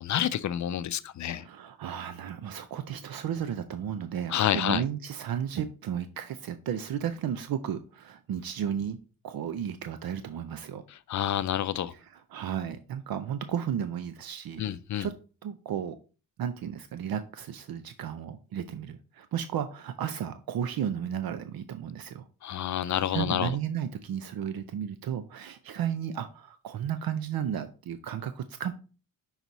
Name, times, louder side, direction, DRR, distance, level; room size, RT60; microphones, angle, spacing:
voice 1, 0.0-1.4 4.3-4.8 11.1-11.9 14.6-15.1 22.4-23.6, left 11 dB, 55° left, 0.4 m, -28 dB
voice 2, 1.3-9.0 9.2-10.8 11.9-14.6 15.0-15.1 15.4-16.0 16.4-22.2 22.9-28.7, right 9 dB, 80° right, 0.6 m, -34 dB
6.1 x 4.0 x 4.0 m
wide cardioid pair, 130°, 35 cm